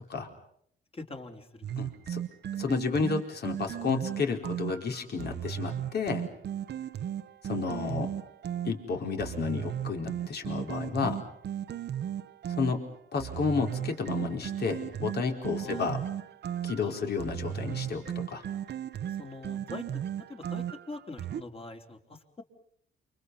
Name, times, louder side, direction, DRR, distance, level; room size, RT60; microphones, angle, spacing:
voice 1, 0.9-1.7 15.6-15.9 16.8-17.1 19.2-19.8 20.3-22.4, left 2 dB, 30° left, 4 dB, 4.1 m, -43 dB
sound 1, 1.6-21.4, right 10 dB, 55° right, 0.9 m, -36 dB
voice 2, 1.8-2.2 2.6-6.2 7.4-8.1 8.6-11.2 12.5-12.8 13.1-16.0 16.6-18.4, left 5 dB, 55° left, 3 dB, 4.6 m, -31 dB
29.5 x 26.5 x 5.6 m, 0.66 s
cardioid pair, 90°, 20 cm